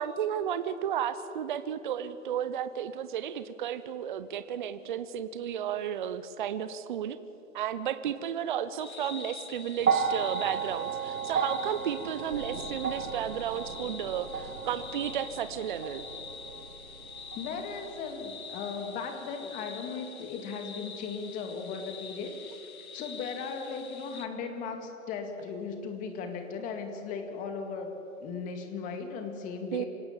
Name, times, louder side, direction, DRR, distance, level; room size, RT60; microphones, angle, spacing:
voice 1, 0.0-7.2 7.5-16.0 29.7-29.8, right 9 dB, 35° right, 12 dB, 0.8 m, -33 dB
sound 1, 8.8-24.3, left 6 dB, 80° left, 2.2 m, -45 dB
sound 2, 9.8-18.1 19.2-19.3, right 6 dB, 80° right, 1.8 m, -34 dB
sound 3, 12.3-19.2, right 5 dB, 55° right, 2.4 m, -51 dB
voice 2, 17.3-22.4 22.9-27.9 28.2-29.9, left 5 dB, 20° left, 5 dB, 2.1 m, -37 dB
26.5 x 18.5 x 7.3 m, 3.0 s
hypercardioid pair, 145°, 42 cm